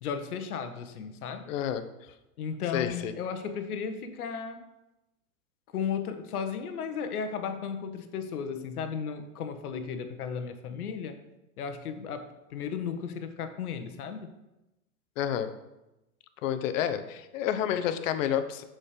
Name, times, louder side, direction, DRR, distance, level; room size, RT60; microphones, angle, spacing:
voice 1, 0.0-1.4 2.4-4.6 5.7-11.2 11.6-14.3, left 6 dB, 80° left, 8 dB, 1.0 m, -35 dB
voice 2, 1.5-1.9 2.7-3.1 15.2-15.5 16.4-18.6, left 10 dB, 60° left, 11 dB, 0.8 m, -29 dB
6.4 x 4.4 x 5.0 m, 0.97 s
hypercardioid pair, 130°, 44 cm